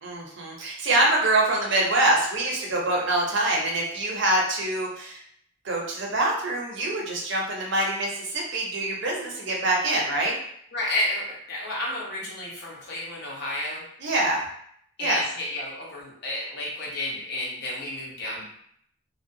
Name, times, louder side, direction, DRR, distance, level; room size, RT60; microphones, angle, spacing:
voice 1, 0.0-5.2 5.6-10.3 14.0-14.4 15.0-15.2, right 2 dB, 55° right, -1 dB, 0.5 m, -25 dB
voice 2, 10.7-13.8 15.0-18.5, left 1 dB, 50° left, -5 dB, 0.8 m, -31 dB
2.7 x 2.1 x 2.6 m, 0.68 s
head